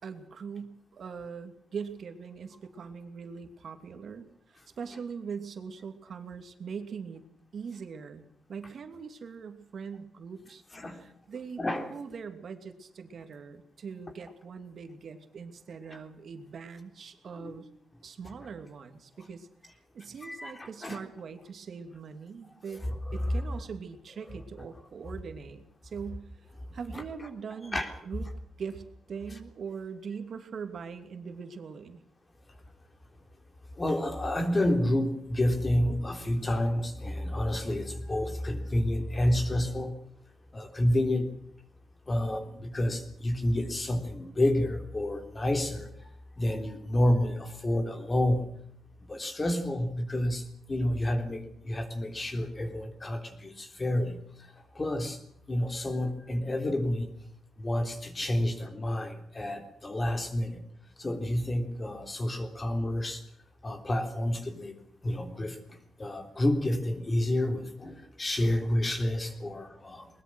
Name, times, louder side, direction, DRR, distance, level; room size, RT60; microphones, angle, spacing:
voice 1, 0.0-7.2 7.5-17.7 18.0-19.5 19.9-22.8 23.1-26.3 26.7-32.0, right 6 dB, 55° right, 7 dB, 2.7 m, -41 dB
voice 2, 20.2-21.0 22.9-23.2 26.9-27.0 27.7-27.9 33.8-39.9 40.5-41.4 42.1-45.9 46.4-48.5 49.1-55.2 55.5-57.1 57.6-60.6 61.0-63.2 63.6-64.8 65.0-70.1, left 1 dB, 20° left, 6 dB, 3.6 m, -29 dB
22.0 x 21.5 x 6.4 m, 0.67 s
cardioid pair, 135°, 0 cm